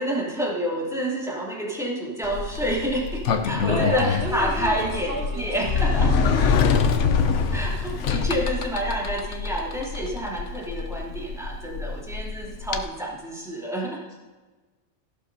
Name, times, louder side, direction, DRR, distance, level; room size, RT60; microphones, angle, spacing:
voice 1, 0.0-6.2 7.5-14.0, equal, 5° right, -5 dB, 2.8 m, -29 dB
Sliding door, 2.2-12.8, left 5 dB, 85° left, 1.1 m, -25 dB
voice 2, 3.7-7.6, right 2 dB, 60° right, -1 dB, 1.4 m, -33 dB
sound 1, 3.8-8.8, left 4 dB, 60° left, 2.1 m, -43 dB
15.5 x 11.5 x 2.7 m, 1.3 s
omnidirectional pair, 1.2 m